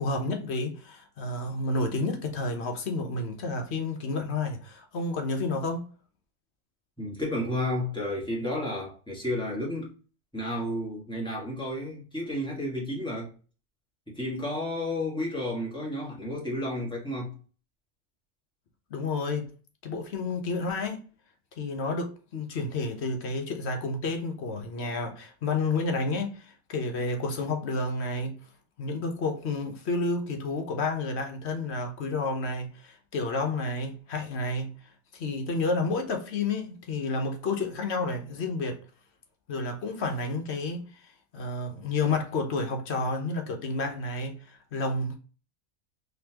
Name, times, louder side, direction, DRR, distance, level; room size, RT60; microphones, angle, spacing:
voice 1, 0.0-5.9 18.9-19.5 19.8-21.0 21.6-28.4 28.8-34.7 35.1-38.8 39.5-40.8 41.3-45.2, left 3 dB, 70° left, 1.1 m, -30 dB
voice 2, 7.0-9.9 10.3-13.3 14.1-17.4, left 1 dB, 5° left, 1.5 m, -32 dB
4.1 x 2.9 x 2.8 m
omnidirectional pair, 1.2 m